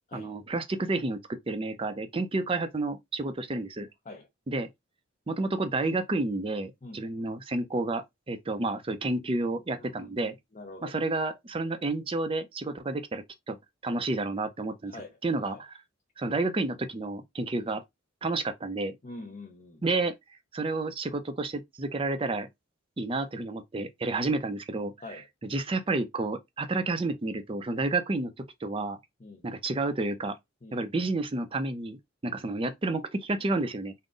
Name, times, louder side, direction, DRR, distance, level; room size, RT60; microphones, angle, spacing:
voice 1, 0.1-3.9 4.5-4.7 5.3-10.3 10.8-13.6 13.8-15.0 15.2-15.8 16.2-17.8 18.2-19.0 19.8-20.1 20.5-22.5 23.0-24.9 25.4-28.3 28.6-29.0 29.4-30.4 30.7-33.9, right 2 dB, 25° right, 0.5 m, -30 dB
voice 2, 6.8-7.3 9.8-11.0 14.9-15.2 15.5-15.6 19.0-19.8 25.0-25.3 29.2-29.4 30.6-30.8, left 2 dB, 35° left, 0.7 m, -45 dB
3.8 x 2.1 x 3.7 m
head